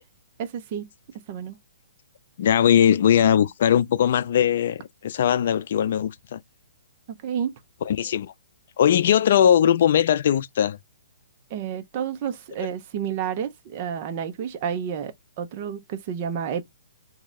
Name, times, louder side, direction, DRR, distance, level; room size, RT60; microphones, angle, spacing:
voice 1, 0.4-0.9 1.3-1.6 7.1-7.5 11.5-16.6, right 8 dB, 35° right, 0.6 m, -30 dB
voice 2, 2.4-6.4 7.8-8.3 8.8-10.8, left 9 dB, 55° left, 0.5 m, -20 dB
3.1 x 2.8 x 3.6 m
hypercardioid pair, 150°, 0 cm